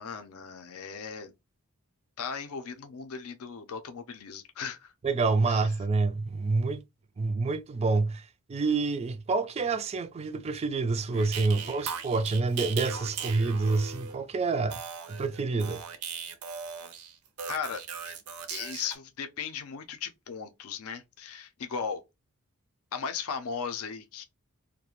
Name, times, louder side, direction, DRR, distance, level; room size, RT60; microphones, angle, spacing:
voice 1, 0.0-1.3 2.2-4.9 5.5-5.6 17.4-18.1 18.5-22.0 22.9-24.2, left 6 dB, 70° left, 0.5 m, -37 dB
voice 2, 5.0-6.8 7.2-14.8 15.1-15.8, right 3 dB, 30° right, 0.3 m, -28 dB
sound 1, 11.1-14.2 14.7-19.0, right 6 dB, 80° right, 0.6 m, -38 dB
2.3 x 2.1 x 2.9 m
head